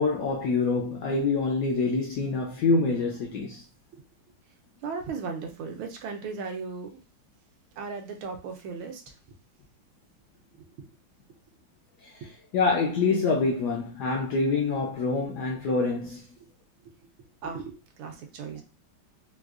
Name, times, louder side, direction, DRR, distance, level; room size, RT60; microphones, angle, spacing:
voice 1, 0.0-3.6 12.0-16.2, left 4 dB, 75° left, 0.9 m, -26 dB
voice 2, 4.8-7.0 7.8-9.0 17.4-17.7 18.0-18.6, right 5 dB, 80° right, 1.5 m, -36 dB
4.6 x 2.2 x 2.4 m
omnidirectional pair, 2.3 m